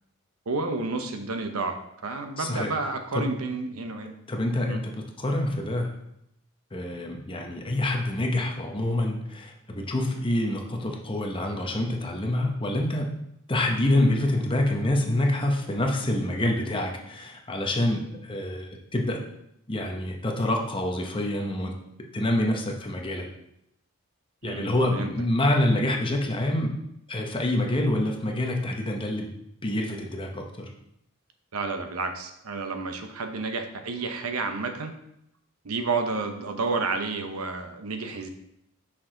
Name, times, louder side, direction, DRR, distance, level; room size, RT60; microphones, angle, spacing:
voice 1, 0.5-1.8 2.0-4.1 4.7-4.8 24.4-24.6 24.9-25.1 31.5-34.9 35.6-38.3, right 3 dB, 90° right, 6 dB, 0.8 m, -30 dB
voice 2, 2.4-2.7 3.1-3.2 4.3-5.9 6.7-13.1 13.5-19.2 19.7-21.7 22.1-23.3 24.4-26.7 27.1-29.3 29.6-30.7, left 1 dB, 25° left, 2 dB, 0.8 m, -26 dB
6.0 x 4.7 x 3.8 m, 0.80 s
head